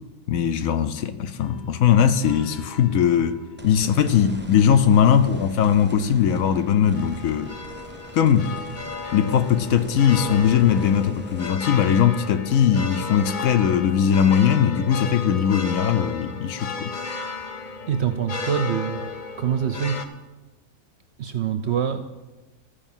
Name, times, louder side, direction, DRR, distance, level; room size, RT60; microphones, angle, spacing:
voice 1, 0.3-3.4 3.6-7.5 8.1-8.5 9.1-16.9, left 8 dB, 70° left, 1.0 m, -20 dB
sound 1, 1.4-20.1, left 4 dB, 40° left, 0.7 m, -35 dB
sound 2, 3.6-15.9 16.4-16.5 19.8-19.9, right 3 dB, 15° right, 0.4 m, -43 dB
voice 2, 17.9-19.1 19.4-20.0 21.2-22.1, right 8 dB, 60° right, 0.7 m, -25 dB
14.5 x 5.0 x 7.2 m
omnidirectional pair, 1.6 m